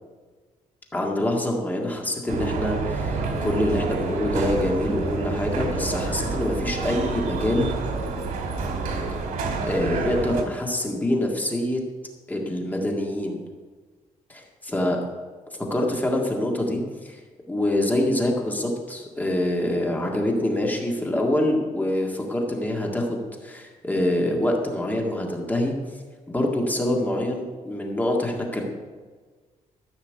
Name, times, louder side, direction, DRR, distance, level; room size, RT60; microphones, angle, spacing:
voice 1, 0.9-7.7 9.6-11.8 12.3-13.4 14.3-15.1 15.7-17.2 17.5-25.7 26.3-28.6, left 1 dB, 10° left, 0 dB, 1.9 m, -25 dB
sound 1, 2.3-10.4, right 4 dB, 90° right, 2.1 m, -28 dB
14.0 x 5.7 x 8.1 m, 1.4 s
cardioid pair, 150°, 13 cm